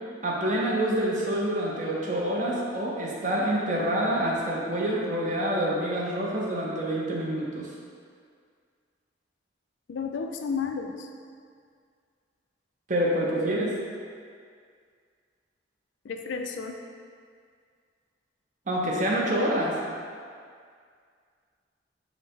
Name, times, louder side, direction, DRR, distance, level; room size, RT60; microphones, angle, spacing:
voice 1, 0.2-7.7 12.9-13.8 18.7-19.7, right 1 dB, 40° right, -4 dB, 0.7 m, -27 dB
voice 2, 9.9-11.1 16.0-16.8, left 5 dB, 75° left, 4 dB, 0.4 m, -32 dB
5.3 x 2.1 x 4.4 m, 2.1 s
head